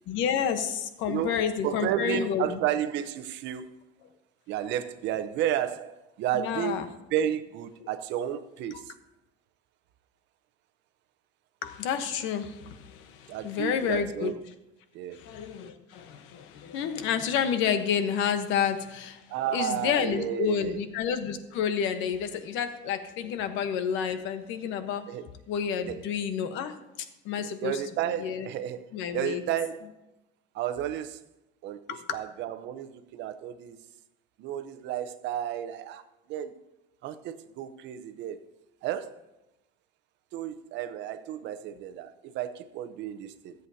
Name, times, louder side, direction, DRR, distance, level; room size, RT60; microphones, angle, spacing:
voice 1, 0.1-2.6 6.3-6.9 11.6-14.3 15.1-19.2 19.5-25.0 25.5-27.8 28.2-28.5 28.9-29.4 31.9-32.2, left 8 dB, 70° left, 9 dB, 1.1 m, -30 dB
voice 2, 1.1-3.7 4.5-8.9 13.3-14.4 14.9-15.2 19.3-20.8 25.1-25.2 25.9-26.0 27.4-29.9 30.5-31.2 31.6-33.8 34.4-36.5 37.0-38.4 38.8-39.1 40.3-43.5, right 10 dB, 65° right, 11 dB, 0.8 m, -32 dB
22.5 x 8.0 x 2.8 m, 0.95 s
cardioid pair, 155°, 20 cm